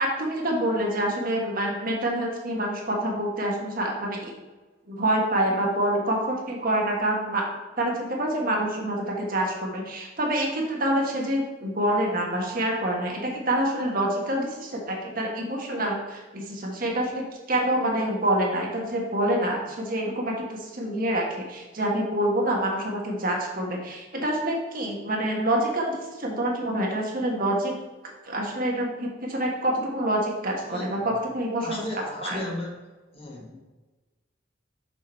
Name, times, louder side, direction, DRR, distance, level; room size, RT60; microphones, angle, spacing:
voice 1, 0.0-4.3 4.9-7.4 7.8-27.7 28.2-31.8 32.2-32.4, right 1 dB, 50° right, 0 dB, 1.3 m, -26 dB
voice 2, 30.7-31.1 31.6-32.8 33.1-33.6, left 2 dB, 30° left, -1 dB, 1.2 m, -35 dB
6.5 x 4.9 x 4.3 m, 1.2 s
head